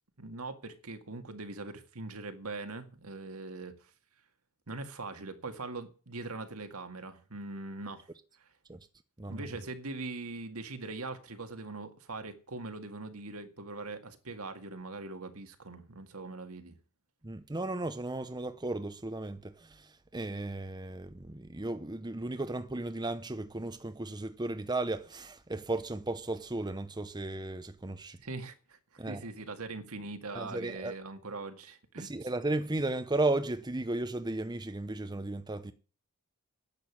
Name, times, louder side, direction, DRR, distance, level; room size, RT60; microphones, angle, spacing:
voice 1, 0.2-3.9 4.7-8.1 9.3-16.8 28.2-32.1, right 3 dB, 75° right, 2.0 m, -41 dB
voice 2, 17.2-28.2 29.0-29.3 30.3-30.9 32.0-35.7, right 2 dB, 20° right, 0.7 m, -35 dB
10.5 x 7.9 x 9.6 m
head